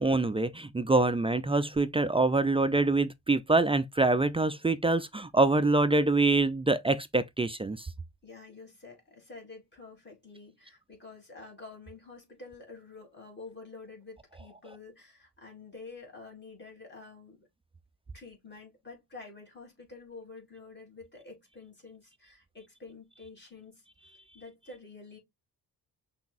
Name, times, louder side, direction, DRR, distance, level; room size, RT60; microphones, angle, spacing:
voice 1, 0.0-7.9, right 2 dB, 15° right, 0.3 m, -25 dB
voice 2, 8.2-17.5 18.1-23.8 24.3-25.2, left 3 dB, 25° left, 3.2 m, -48 dB
5.8 x 3.4 x 2.5 m
cardioid pair, 90°, 40 cm